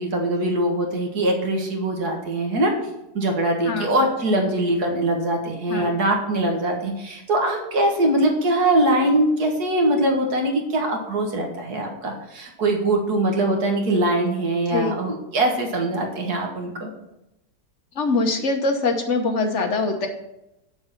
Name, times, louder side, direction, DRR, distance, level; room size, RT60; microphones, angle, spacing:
voice 1, 0.0-2.7 3.1-16.9, right 1 dB, 65° right, 2 dB, 2.0 m, -22 dB
voice 2, 17.9-20.1, left 3 dB, 50° left, 4 dB, 1.2 m, -23 dB
7.1 x 6.7 x 5.8 m, 0.89 s
omnidirectional pair, 1.8 m